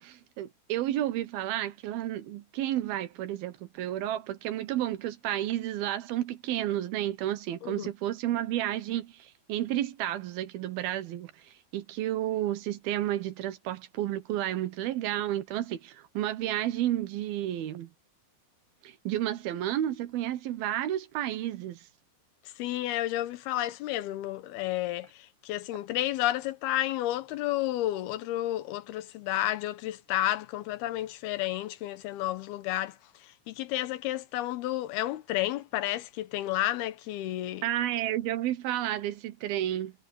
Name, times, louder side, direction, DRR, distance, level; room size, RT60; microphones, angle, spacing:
voice 1, 0.0-11.3 11.7-17.9 18.8-21.8 37.6-39.9, right 12 dB, 80° right, 3.1 m, -31 dB
voice 2, 22.6-33.0 33.5-37.6, left 14 dB, 90° left, 3.0 m, -31 dB
omnidirectional pair, 4.3 m